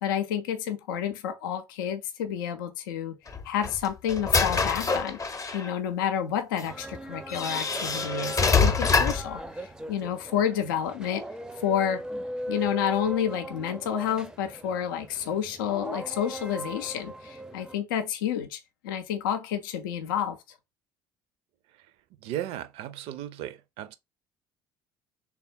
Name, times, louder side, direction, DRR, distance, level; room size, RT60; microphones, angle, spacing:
voice 1, 0.0-3.2 3.4-5.2 5.5-11.2 11.6-12.0 12.5-20.4, left 9 dB, 75° left, 0.5 m, -30 dB
sound 1, 3.3-5.7 6.6-6.7 7.3-9.3, left 4 dB, 30° left, 0.7 m, -25 dB
sound 2, 6.6-17.8, right 1 dB, 5° right, 0.5 m, -39 dB
voice 2, 22.2-24.0, right 12 dB, 60° right, 0.5 m, -36 dB
3.3 x 2.3 x 4.3 m
figure-of-eight pair, 55°, 11 cm